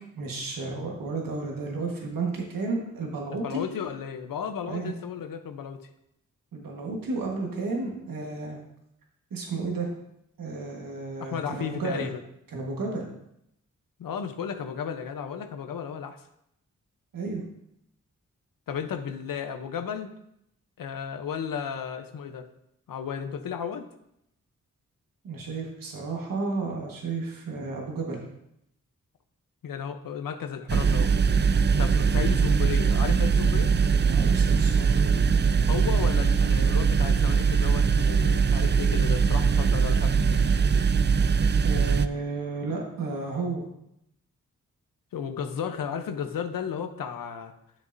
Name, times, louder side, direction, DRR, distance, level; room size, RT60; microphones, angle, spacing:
voice 1, 0.1-3.6 4.6-4.9 6.5-8.6 9.3-9.9 10.4-12.1 12.5-13.1 17.1-17.4 25.2-28.2 34.1-35.1 41.6-43.7, right 3 dB, 85° right, 0 dB, 1.5 m, -32 dB
voice 2, 3.3-5.9 11.2-12.2 14.0-16.2 18.7-20.1 20.8-22.5 22.9-23.8 29.6-31.1 31.8-33.7 35.7-40.4 45.1-47.5, left 7 dB, 85° left, 7 dB, 0.8 m, -34 dB
sound 1, 30.7-42.1, right 5 dB, 35° right, 0.4 m, -22 dB
9.8 x 6.4 x 2.6 m, 0.78 s
cardioid pair, 45°, 33 cm